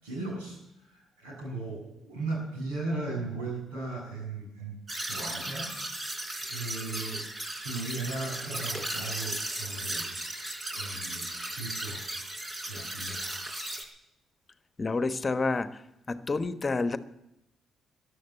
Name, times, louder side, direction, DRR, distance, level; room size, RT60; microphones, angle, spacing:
voice 1, 0.0-4.7 5.1-7.3 7.6-10.1 10.7-11.3 11.6-12.0 12.7-13.4, right 3 dB, 90° right, -1 dB, 6.8 m, -37 dB
sound 1, 4.9-13.8, right 1 dB, 40° right, 4.0 m, -36 dB
voice 2, 14.8-15.8 16.1-17.0, left 3 dB, 35° left, 11 dB, 1.2 m, -29 dB
14.5 x 11.0 x 8.7 m, 0.85 s
hypercardioid pair, 50°, 0 cm